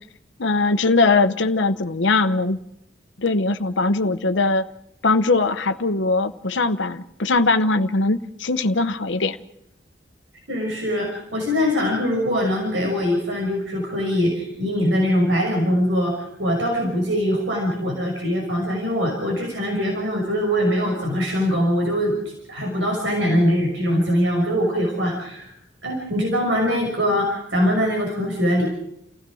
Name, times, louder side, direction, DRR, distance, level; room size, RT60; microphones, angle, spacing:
voice 1, 0.4-2.6 3.2-4.7 5.0-9.4, left 3 dB, 75° left, 8 dB, 1.0 m, -20 dB
voice 2, 10.5-22.2 22.5-25.5 25.8-28.7, equal, 80° right, 0 dB, 6.0 m, -22 dB
29.5 x 16.0 x 6.3 m, 0.80 s
head